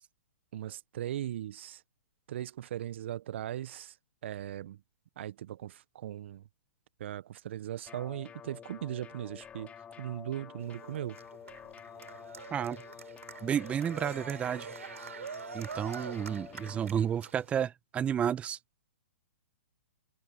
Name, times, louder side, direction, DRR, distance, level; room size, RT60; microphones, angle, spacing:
voice 1, 0.5-1.8 2.3-4.0 4.2-4.8 5.2-6.4 7.0-11.2, right 12 dB, 55° right, 0.8 m, -38 dB
sound 1, 7.9-16.9, left 8 dB, 15° left, 2.0 m, -49 dB
Cheering, 10.6-17.6, right 6 dB, 75° right, 3.6 m, -45 dB
voice 2, 12.5-12.8 13.4-14.7 15.5-18.6, right 8 dB, 15° right, 0.8 m, -31 dB
hypercardioid pair, 125°, 8 cm